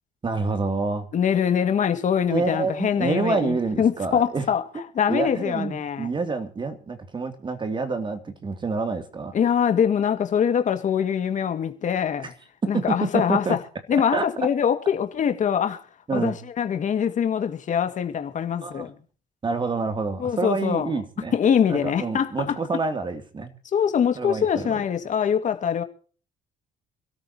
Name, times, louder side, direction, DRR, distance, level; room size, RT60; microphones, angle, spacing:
voice 1, 0.2-1.1 2.3-4.5 4.7-4.8 5.1-9.4 12.2-12.3 12.6-13.6 14.1-14.2 16.1-16.4 18.6-18.9 19.4-21.3 21.7-23.5 24.1-24.8, right 4 dB, 30° right, 2.9 m, -27 dB
voice 2, 1.1-4.6 4.9-6.1 9.3-12.3 12.7-13.6 13.9-15.8 16.1-18.9 20.2-21.0 21.3-22.6 23.7-25.8, left 8 dB, 45° left, 2.2 m, -23 dB
27.0 x 13.5 x 3.0 m
cardioid pair, 110°, 17 cm